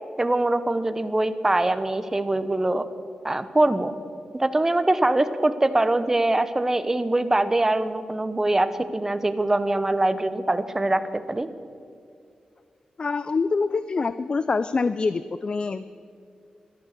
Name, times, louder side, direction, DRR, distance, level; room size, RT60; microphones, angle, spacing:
voice 1, 0.2-2.9 3.2-3.9 4.4-11.5, right 2 dB, 20° right, 12 dB, 0.8 m, -23 dB
voice 2, 13.0-16.0, left 4 dB, 40° left, 14 dB, 0.4 m, -25 dB
13.0 x 12.5 x 6.6 m, 2.4 s
wide cardioid pair, 95°, 3 cm